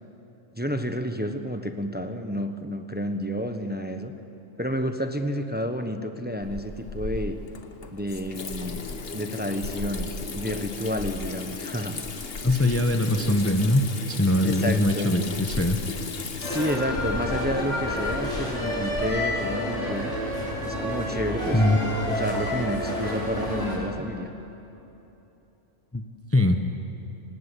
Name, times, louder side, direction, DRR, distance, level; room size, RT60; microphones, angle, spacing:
voice 1, 0.5-4.1 4.6-7.4 7.9-8.9 9.1-12.0 14.4-15.1 16.4-20.2 20.6-24.3, equal, 10° right, 7 dB, 1.0 m, -30 dB
Water tap faucet / Sink (filling or washing), 6.4-19.1, left 4 dB, 50° left, 1.4 m, -36 dB
voice 2, 12.4-15.8 21.5-21.8 25.9-26.0 26.3-26.6, left 1 dB, 10° left, 6 dB, 0.9 m, -22 dB
sound 1, 16.4-23.8, left 1 dB, 65° left, 5.9 m, -29 dB
26.0 x 19.5 x 8.5 m, 3.0 s
omnidirectional pair, 1.3 m